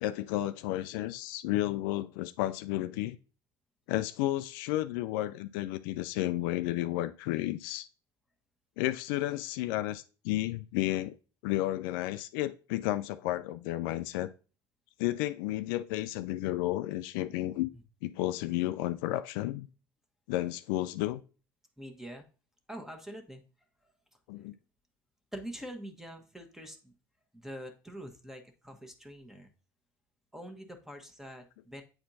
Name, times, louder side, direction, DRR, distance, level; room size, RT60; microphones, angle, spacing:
voice 1, 0.0-3.2 3.9-7.9 8.8-11.2 11.4-14.3 15.0-17.7 18.0-19.7 20.3-21.2 24.3-24.5, left 15 dB, 65° left, 0.4 m, -32 dB
voice 2, 21.8-22.3 22.7-23.4 23.8-23.9 25.3-26.9 27.3-29.5 30.3-31.8, equal, 5° right, 1.3 m, -45 dB
8.7 x 4.2 x 2.7 m
hypercardioid pair, 70°, 12 cm